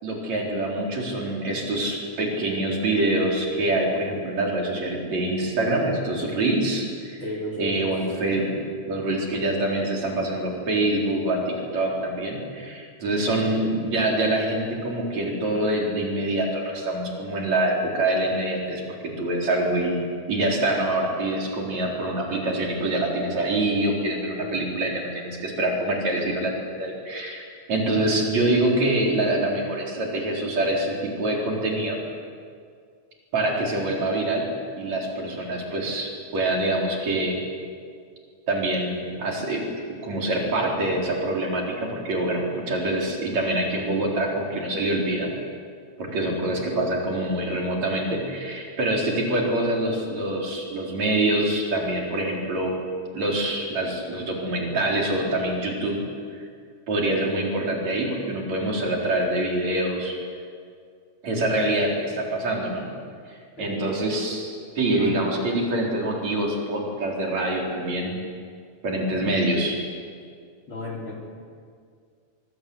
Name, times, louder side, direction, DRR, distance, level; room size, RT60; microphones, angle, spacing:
voice 1, 0.0-7.2 7.6-20.0 20.3-26.5 26.8-27.4 27.7-32.0 33.3-34.5 34.8-37.4 38.5-39.7 40.0-45.3 46.0-52.8 53.1-56.0 56.9-60.2 61.2-62.9 63.3-68.2 68.8-69.8, right 1 dB, 65° right, -1 dB, 5.3 m, -25 dB
voice 2, 7.2-7.9 24.4-24.6 46.1-46.3 63.6-63.8 64.9-65.3 70.7-71.1, left 1 dB, 45° left, -2 dB, 4.8 m, -34 dB
24.5 x 23.5 x 8.0 m, 2.2 s
omnidirectional pair, 3.4 m